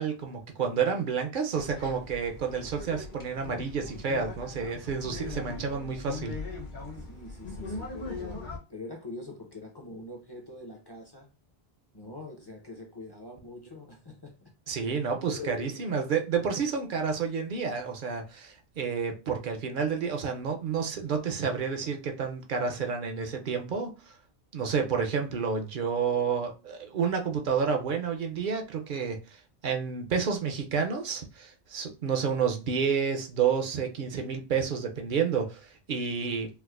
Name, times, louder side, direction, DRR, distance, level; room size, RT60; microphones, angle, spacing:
voice 1, 0.0-6.4 14.7-23.9 24.5-36.5, right 6 dB, 60° right, 0.7 m, -30 dB
sound 1, 1.5-8.6, left 3 dB, 50° left, 0.9 m, -40 dB
voice 2, 7.0-8.4 8.7-11.3 11.9-14.5 14.8-15.8, left 2 dB, 30° left, 0.5 m, -44 dB
4.4 x 2.0 x 2.4 m
omnidirectional pair, 1.1 m